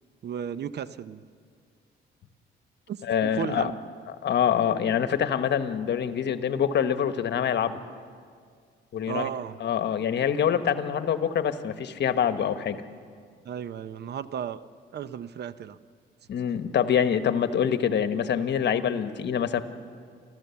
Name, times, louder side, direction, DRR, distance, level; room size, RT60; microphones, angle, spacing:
voice 1, 0.2-1.2 2.9-3.8 9.1-9.6 13.4-14.6 14.9-15.8, right 8 dB, 55° right, 15 dB, 0.7 m, -34 dB
voice 2, 3.1-3.7 4.2-7.8 8.9-9.3 9.6-12.8 16.3-19.6, left 8 dB, 60° left, 10 dB, 1.2 m, -25 dB
29.0 x 14.0 x 7.0 m, 2.1 s
cardioid pair, 90°, 20 cm